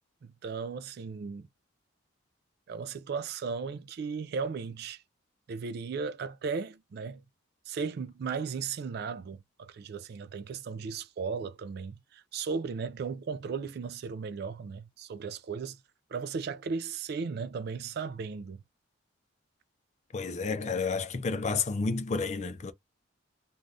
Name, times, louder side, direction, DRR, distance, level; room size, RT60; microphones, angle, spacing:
voice 1, 0.2-1.5 2.7-5.0 5.5-7.2 7.7-15.8 16.1-18.6, right 5 dB, 50° right, 0.3 m, -36 dB
voice 2, 20.1-22.7, left 4 dB, 35° left, 0.4 m, -31 dB
2.5 x 2.3 x 3.3 m
head